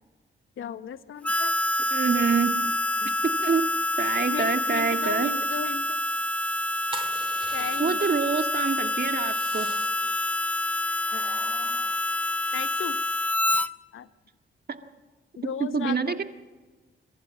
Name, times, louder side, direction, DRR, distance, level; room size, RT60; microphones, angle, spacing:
voice 1, 0.6-1.6 3.0-3.1 4.3-5.8 7.5-8.1 11.1-11.9 12.5-13.0 13.9-14.1 15.4-16.2, left 8 dB, 75° left, 13 dB, 0.9 m, -36 dB
Harmonica, 1.2-13.7, left 1 dB, 5° left, 0.9 m, -27 dB
voice 2, 1.9-2.7 3.2-3.6 4.0-5.3 7.8-9.7 15.6-16.2, right 5 dB, 50° right, 6 dB, 1.9 m, -26 dB
sound 1, 6.9-8.2 9.2-10.1 11.0-12.7, right 2 dB, 25° right, 2.3 m, -43 dB
27.5 x 14.5 x 7.5 m, 1.3 s
cardioid pair, 55°, 21 cm